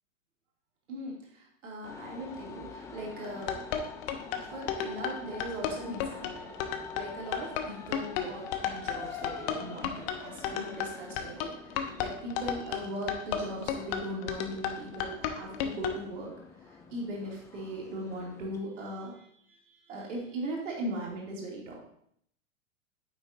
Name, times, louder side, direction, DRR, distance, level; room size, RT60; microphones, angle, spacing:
voice 1, 1.6-3.6 4.3-6.5 6.9-16.3 16.9-19.1 19.5-19.6 19.9-21.8, right 1 dB, 65° right, -2 dB, 3.0 m, -39 dB
sound 1, 1.8-18.6, left 5 dB, 10° left, 0.3 m, -47 dB
sound 2, 3.2-16.0, left 9 dB, 45° left, 1.0 m, -33 dB
9.4 x 7.9 x 2.8 m, 0.68 s
figure-of-eight pair, 95°, 40 cm